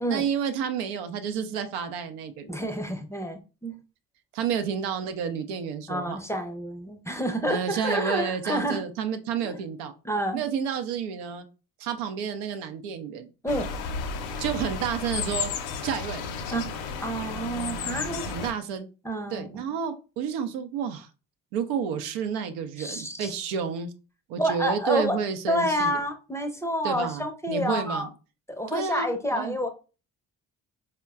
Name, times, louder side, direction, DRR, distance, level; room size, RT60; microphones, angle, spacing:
voice 1, 0.1-2.6 4.3-6.2 7.5-9.9 10.3-11.5 11.8-13.3 14.4-15.5 15.8-16.2 16.5-16.6 18.3-18.9 19.3-21.1 21.5-23.9 24.3-26.0 26.8-28.1 28.7-29.6, right 7 dB, 75° right, 8 dB, 0.6 m, -30 dB
voice 2, 2.5-3.7 5.9-8.9 9.4-9.6 10.0-10.4 13.4-13.7 16.5-18.5 19.0-19.5 22.8-23.3 24.4-25.2 25.5-28.1 28.5-29.7, equal, 5° left, 6 dB, 0.6 m, -29 dB
sound 1, 13.5-18.5, left 5 dB, 75° left, 0.6 m, -33 dB
4.4 x 2.1 x 2.3 m, 0.33 s
hypercardioid pair, 45°, 43 cm